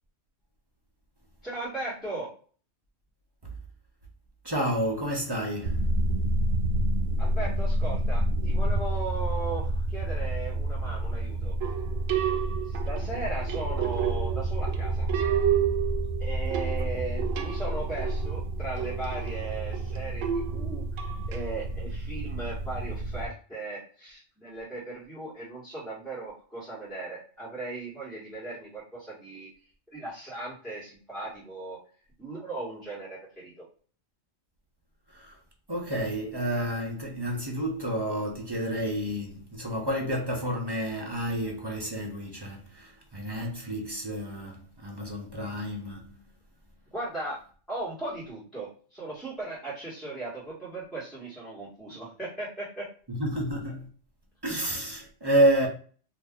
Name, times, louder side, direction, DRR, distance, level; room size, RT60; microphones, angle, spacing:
voice 1, 1.4-2.3 7.2-11.6 12.7-15.1 16.2-20.8 21.3-29.5 29.9-31.8 32.2-33.5 46.9-47.4 47.7-52.9, right 2 dB, ahead, 1.4 m, -37 dB
voice 2, 4.4-5.9 35.1-35.4 35.7-46.2 53.1-53.9 54.4-55.7, right 1 dB, 25° right, 0.6 m, -30 dB
sound 1, 5.6-23.3, right 1 dB, 70° right, 0.4 m, -29 dB
sound 2, 11.6-21.4, right 11 dB, 85° right, 1.0 m, -31 dB
2.8 x 2.6 x 3.5 m
omnidirectional pair, 1.4 m